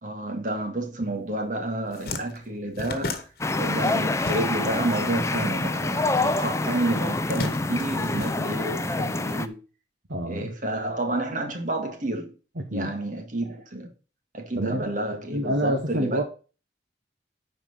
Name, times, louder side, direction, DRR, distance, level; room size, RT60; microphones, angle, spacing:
voice 1, 0.0-3.2 3.5-9.6 10.2-12.3 12.7-13.9 14.3-16.2, right 1 dB, 45° right, 1.9 m, -30 dB
sound 1, 1.3-1.4 1.7-4.9 5.1-6.3 7.0-9.0, left 2 dB, 55° left, 1.3 m, -36 dB
sound 2, 3.4-9.5, left 2 dB, 15° left, 0.5 m, -26 dB
voice 2, 10.1-10.5 12.6-12.9 14.6-14.9 15.3-16.2, right 1 dB, 80° right, 1.3 m, -27 dB
10.0 x 4.6 x 5.6 m
head